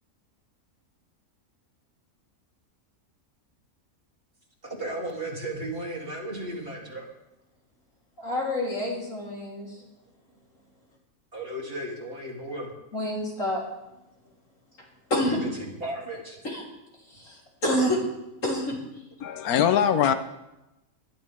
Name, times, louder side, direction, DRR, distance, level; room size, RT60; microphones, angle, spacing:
voice 1, 4.6-7.0 11.3-12.7 15.2-16.4 19.2-19.3, right 1 dB, 40° right, -3 dB, 3.4 m, -35 dB
voice 2, 8.2-9.7 12.9-13.7 15.1-15.4 16.4-16.6 17.1-18.0 18.4-18.8, left 1 dB, 60° left, -4 dB, 4.1 m, -28 dB
voice 3, 19.2-20.1, left 9 dB, 90° left, 10 dB, 1.3 m, -22 dB
21.0 x 12.0 x 3.6 m, 0.94 s
omnidirectional pair, 1.5 m